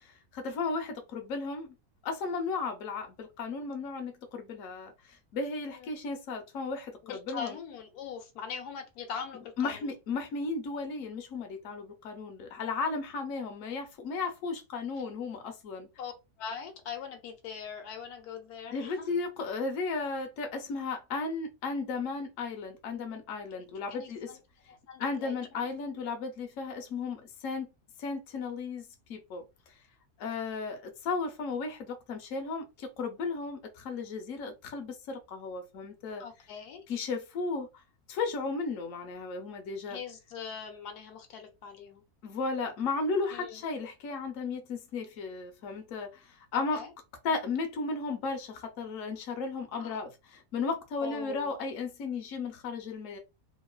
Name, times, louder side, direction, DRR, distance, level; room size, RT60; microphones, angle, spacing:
voice 1, 0.0-1.7 2.0-7.6 9.6-15.9 18.7-24.3 25.0-27.7 28.0-29.4 30.2-36.2 36.9-37.8 38.1-40.0 42.2-46.8 47.2-53.2, left 4 dB, 60° left, 1.0 m, -35 dB
voice 2, 7.0-9.9 16.0-16.1 16.4-19.1 23.9-24.4 24.7-25.3 36.2-36.8 39.9-42.0 43.3-43.6 46.5-46.9 49.8-50.0 51.0-51.5, left 7 dB, 85° left, 1.2 m, -41 dB
3.0 x 2.3 x 2.2 m
omnidirectional pair, 1.6 m